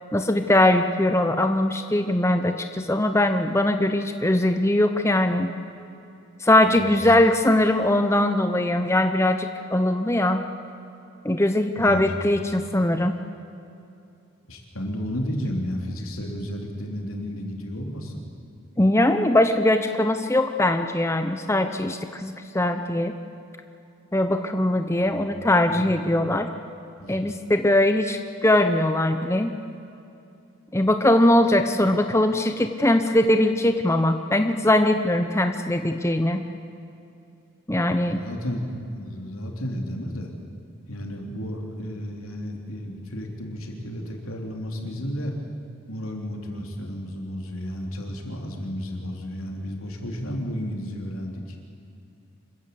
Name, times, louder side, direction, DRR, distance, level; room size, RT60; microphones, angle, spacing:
voice 1, 0.1-5.5 6.4-10.5 11.2-13.2 18.8-23.1 24.1-26.5 27.1-29.5 30.7-36.4 37.7-38.2, left 1 dB, 15° left, 7 dB, 0.8 m, -21 dB
voice 2, 6.7-7.0 11.8-12.0 14.5-18.2 25.0-25.2 25.7-25.9 27.0-27.2 37.9-40.3 40.9-45.3 45.9-51.6, equal, 85° left, 1 dB, 3.5 m, -32 dB
26.0 x 14.5 x 8.5 m, 2.7 s
head